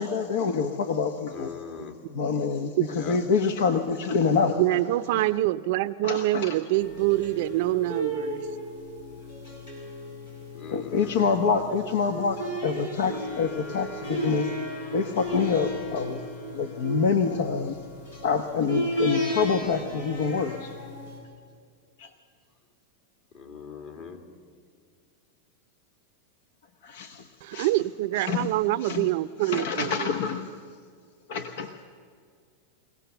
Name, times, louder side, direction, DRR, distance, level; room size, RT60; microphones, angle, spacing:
voice 1, 0.0-1.5 2.1-4.8 5.1-5.2 6.0-6.6 10.7-14.5 14.9-16.2 16.5-17.8 18.2-20.7 22.0-22.1 26.8-27.7 28.1-29.1 29.4-30.5 31.3-31.7, left 5 dB, 70° left, 7 dB, 1.1 m, -27 dB
voice 2, 1.3-2.0 2.9-3.2 10.5-11.2 23.3-24.3, left 6 dB, 45° left, 5 dB, 2.5 m, -41 dB
voice 3, 4.6-8.5 27.4-30.1, right 16 dB, 60° right, 12 dB, 0.5 m, -25 dB
sound 1, 6.8-21.2, equal, 90° left, 7.5 m, -34 dB
23.5 x 17.5 x 6.9 m, 2.1 s
supercardioid pair, 130°, 0 cm